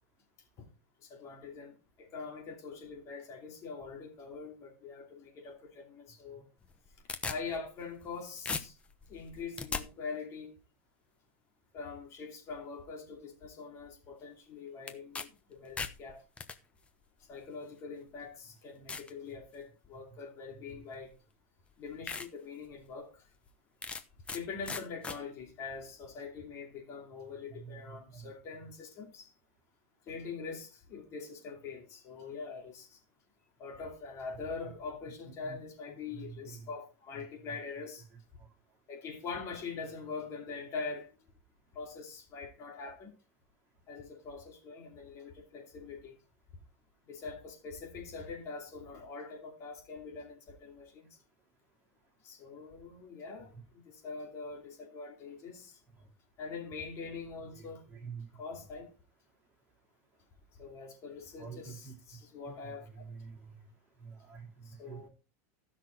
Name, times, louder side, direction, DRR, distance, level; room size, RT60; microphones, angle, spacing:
voice 1, 1.0-6.5 7.3-8.7 9.1-10.5 11.7-16.2 17.2-21.1 21.8-23.3 24.3-29.3 30.1-33.0 33.6-38.0 38.9-41.1 41.7-43.1 43.9-46.2 47.1-51.2 52.2-53.5 53.8-55.8 56.4-57.8 58.3-58.9 60.6-63.0 64.6-65.1, left 4 dB, 35° left, 2.7 m, -43 dB
sound 1, 6.6-8.2 8.5-9.8 14.9-15.3 15.6-16.6 17.4-17.5 18.2-18.3 18.9-19.1 19.6-20.0 21.1-21.2 21.6-21.7 22.1-22.3 22.7-22.8 23.8-24.4 24.7-25.2, left 5 dB, 15° left, 0.9 m, -38 dB
voice 2, 27.5-28.3 35.5-35.6 36.1-36.6 38.4-38.5 56.0-56.1 57.6-58.2 61.4-61.9 62.6-63.6 64.0-65.1, right 6 dB, 25° right, 4.3 m, -47 dB
15.0 x 6.2 x 4.4 m
supercardioid pair, 150°, 8 cm